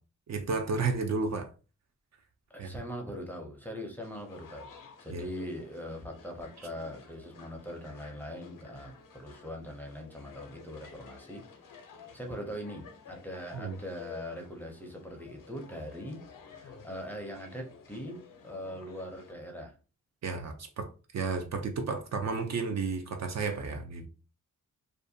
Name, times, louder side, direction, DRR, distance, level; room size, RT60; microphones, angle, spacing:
voice 1, 0.3-1.5 2.6-2.7 5.1-5.2 13.5-13.7 20.2-20.9 21.1-24.1, right 4 dB, 55° right, 0.4 m, -32 dB
voice 2, 2.5-4.7 5.0-11.4 12.1-19.7, equal, 5° left, 0.5 m, -41 dB
sound 1, 4.0-19.3, left 5 dB, 80° left, 0.5 m, -52 dB
2.4 x 2.1 x 2.6 m
wide cardioid pair, 115°, 32 cm